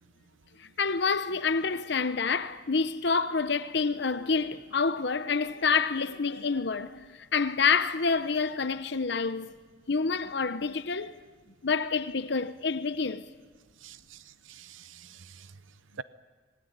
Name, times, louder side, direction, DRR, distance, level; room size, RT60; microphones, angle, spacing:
voice 1, 0.6-9.5 9.9-11.1 11.6-13.2, left 5 dB, 60° left, 0.9 m, -28 dB
voice 2, 13.8-15.5 16.0-16.1, right 6 dB, 85° right, 0.7 m, -46 dB
27.0 x 20.5 x 9.5 m
head